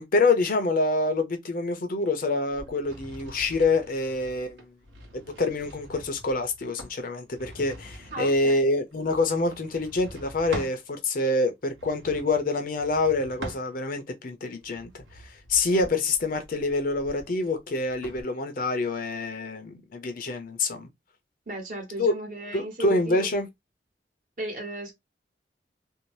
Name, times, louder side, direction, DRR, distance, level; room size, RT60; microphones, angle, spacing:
voice 1, 0.0-4.7 5.1-20.9 22.0-22.1 22.5-23.5, left 2 dB, 50° left, 0.6 m, -26 dB
sound 1, 2.5-10.8 11.6-14.1 14.6-18.2, right 1 dB, 80° right, 0.9 m, -44 dB
voice 2, 8.1-8.6 21.5-23.3 24.4-24.9, right 1 dB, 50° right, 1.1 m, -35 dB
2.6 x 2.0 x 3.0 m
head